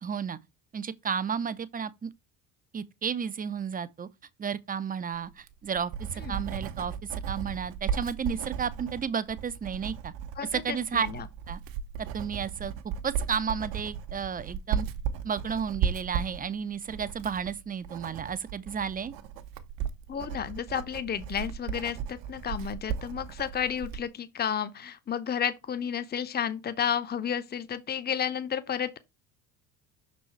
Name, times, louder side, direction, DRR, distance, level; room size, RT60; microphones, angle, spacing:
voice 1, 0.0-0.4 0.7-2.1 2.7-4.1 4.4-10.1 10.5-11.1 11.5-11.6 12.1-12.7 13.0-14.9 15.2-19.1, right 7 dB, 20° right, 0.6 m, -32 dB
Writing, 5.3-24.1, right 8 dB, 60° right, 1.1 m, -36 dB
voice 2, 10.4-11.3 20.1-29.0, left 8 dB, 20° left, 0.8 m, -32 dB
6.1 x 4.1 x 4.5 m
hypercardioid pair, 60°, 49 cm